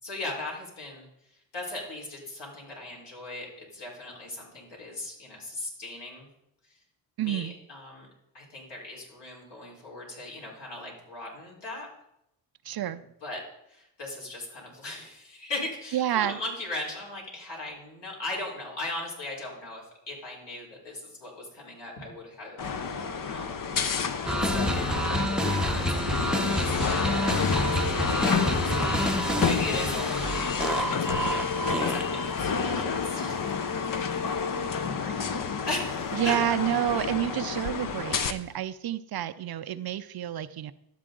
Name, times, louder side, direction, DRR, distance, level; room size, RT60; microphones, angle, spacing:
voice 1, 0.0-6.3 6.7-6.8 7.2-8.1 8.3-11.9 13.2-13.4 13.7-23.7 24.4-26.2 26.4-33.4 34.0-35.2 35.7-36.4 38.1-38.5, left 2 dB, 60° left, -3 dB, 4.3 m, -39 dB
voice 2, 7.2-7.5 12.6-13.0 15.9-16.4 36.1-40.7, right 11 dB, 50° right, 11 dB, 0.6 m, -29 dB
sound 1, 22.6-38.3, left 6 dB, 45° left, 0.9 m, -29 dB
sound 2, 24.3-32.3, right 1 dB, ahead, 0.8 m, -28 dB
12.0 x 7.5 x 3.8 m, 0.81 s
supercardioid pair, 60°, 47 cm